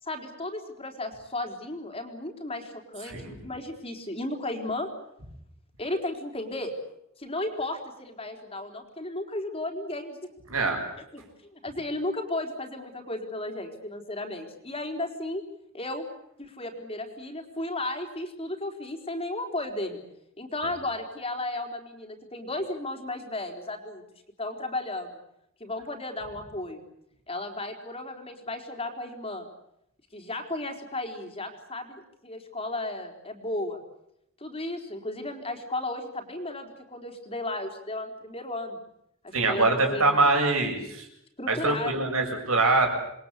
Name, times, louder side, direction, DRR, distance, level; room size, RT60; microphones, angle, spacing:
voice 1, 0.0-4.9 5.8-6.7 7.2-10.2 11.1-15.4 15.7-16.1 16.4-20.0 20.4-24.0 24.4-25.1 25.6-26.8 27.3-29.5 30.1-33.8 34.4-38.8 39.2-40.2 41.4-42.1, left 2 dB, 25° left, 5 dB, 4.1 m, -34 dB
voice 2, 39.3-41.1 41.5-42.9, right 3 dB, 80° right, 3 dB, 7.4 m, -24 dB
28.5 x 21.5 x 8.4 m, 0.79 s
head